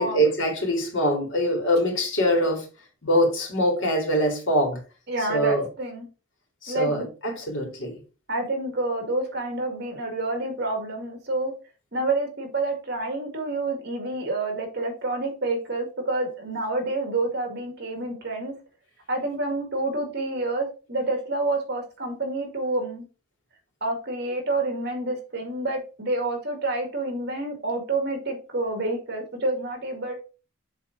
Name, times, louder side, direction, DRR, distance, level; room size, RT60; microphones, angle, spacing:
voice 1, 0.0-2.7 3.0-4.8 5.3-5.6 6.6-7.9, equal, 65° left, 2.6 m, -23 dB
voice 2, 5.1-6.1 6.7-7.1 8.3-11.5 11.9-18.5 19.1-23.1 23.8-30.1, right 2 dB, 50° right, 2.1 m, -28 dB
7.4 x 3.6 x 4.5 m
head